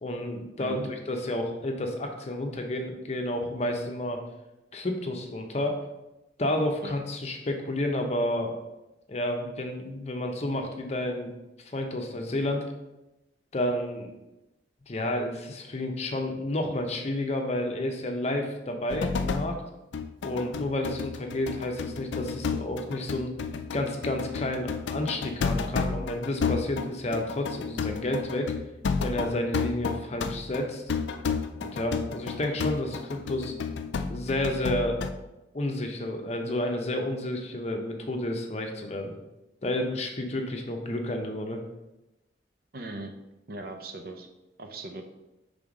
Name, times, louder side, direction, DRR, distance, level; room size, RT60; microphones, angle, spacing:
voice 1, 0.0-4.2 4.7-5.8 6.4-8.6 9.1-11.3 11.7-12.7 13.5-14.1 14.9-19.6 20.2-23.3 23.7-28.5 29.0-30.8 31.6-33.5 34.1-35.0 35.5-39.1 39.6-41.6, left 1 dB, 35° left, 3 dB, 0.7 m, -30 dB
voice 2, 0.6-0.9 6.8-6.9 42.7-43.1 43.5-44.3 44.6-45.0, right 2 dB, 55° right, 5 dB, 0.6 m, -38 dB
sound 1, 18.9-19.6 19.9-35.1, left 5 dB, 80° left, 0.4 m, -31 dB
5.5 x 3.5 x 4.9 m, 0.97 s
head